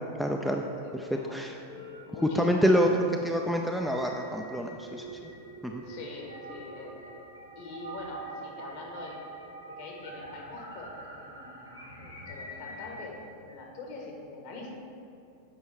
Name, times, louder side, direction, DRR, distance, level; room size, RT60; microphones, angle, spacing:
voice 1, 0.2-0.6 0.9-1.6 2.3-2.9 3.2-5.3 5.6-5.8, equal, ahead, 1 dB, 0.4 m, -27 dB
voice 2, 0.8-1.3 2.1-3.0 5.8-7.2 7.5-11.6 12.0-14.7, left 2 dB, 45° left, 0 dB, 1.4 m, -44 dB
sound 1, 1.6-13.1, right 1 dB, 80° left, 1.2 m, -45 dB
7.7 x 5.1 x 4.6 m, 2.5 s
figure-of-eight pair, 90°, 0 cm